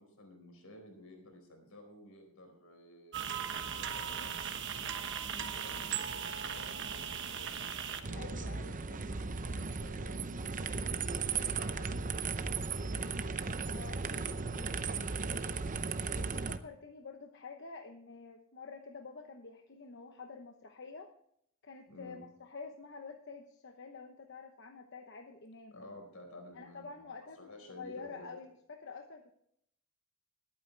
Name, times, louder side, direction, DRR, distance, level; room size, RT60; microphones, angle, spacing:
voice 1, 0.0-5.0 5.3-10.4 10.8-13.4 13.9-15.7 21.9-22.2 25.7-28.3, left 1 dB, 80° left, 4 dB, 4.4 m, -54 dB
sound 1, 3.1-8.0, right 7 dB, 60° right, 1.2 m, -38 dB
sound 2, 8.0-16.6, right 4 dB, 40° right, 0.7 m, -36 dB
voice 2, 8.1-8.7 13.7-14.0 16.2-21.1 21.6-25.8 26.5-29.3, left 4 dB, 55° left, 4 dB, 1.0 m, -48 dB
21.0 x 8.8 x 3.3 m, 0.71 s
head